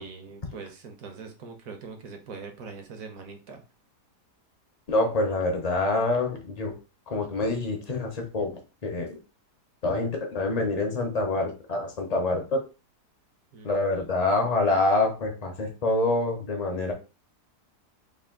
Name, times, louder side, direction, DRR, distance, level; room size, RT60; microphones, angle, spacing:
voice 1, 0.0-3.6 13.5-14.1, right 5 dB, 60° right, 4 dB, 1.1 m, -42 dB
voice 2, 4.9-6.8 7.1-9.2 9.8-12.6 13.6-16.9, left 2 dB, 50° left, 2 dB, 0.5 m, -26 dB
3.4 x 2.5 x 3.6 m, 0.32 s
omnidirectional pair, 1.8 m